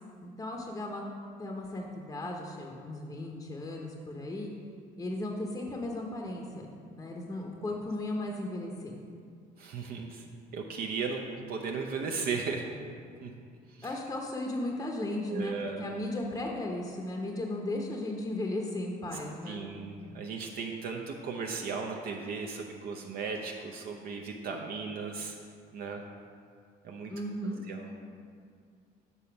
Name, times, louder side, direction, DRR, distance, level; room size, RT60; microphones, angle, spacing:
voice 1, 0.2-1.0 1.4-4.5 5.0-8.9 13.8-19.6 27.1-27.7, left 1 dB, 20° left, 0 dB, 0.7 m, -36 dB
voice 2, 9.6-10.2 10.5-12.7 13.2-13.3 13.7-14.0 15.3-15.9 19.5-25.4 25.7-26.0 26.8-27.1 27.7-27.9, right 5 dB, 65° right, 2 dB, 0.6 m, -36 dB
6.9 x 4.1 x 5.7 m, 2.2 s
cardioid pair, 110°, 17 cm